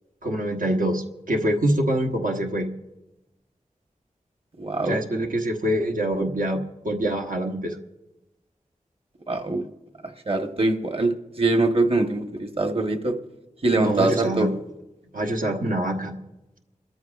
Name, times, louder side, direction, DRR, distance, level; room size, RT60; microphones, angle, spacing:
voice 1, 0.2-2.7 4.8-7.8 13.8-14.5 15.1-16.2, right 1 dB, 90° right, 1 dB, 1.1 m, -25 dB
voice 2, 4.6-5.0 9.3-9.7 10.3-13.1 13.6-14.5, right 2 dB, 45° right, 5 dB, 1.2 m, -23 dB
28.5 x 13.5 x 2.4 m, 1.0 s
wide cardioid pair, 65°, 14 cm